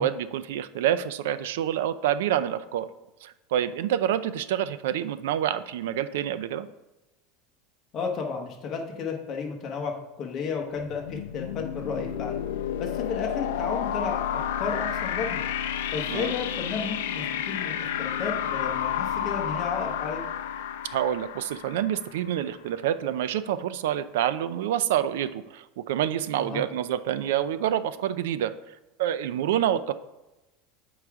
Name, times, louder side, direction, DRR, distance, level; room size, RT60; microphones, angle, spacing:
voice 1, 0.0-2.9 3.2-6.7 16.1-16.3 20.9-28.5 29.0-29.9, right 11 dB, 85° right, 12 dB, 0.4 m, -27 dB
voice 2, 7.9-12.4 12.8-15.4 15.9-20.2 26.4-26.6, left 5 dB, 30° left, 1 dB, 1.2 m, -33 dB
sound 1, 10.8-22.5, left 9 dB, 90° left, 0.4 m, -31 dB
7.9 x 4.8 x 3.6 m, 0.97 s
supercardioid pair, 155°, 0 cm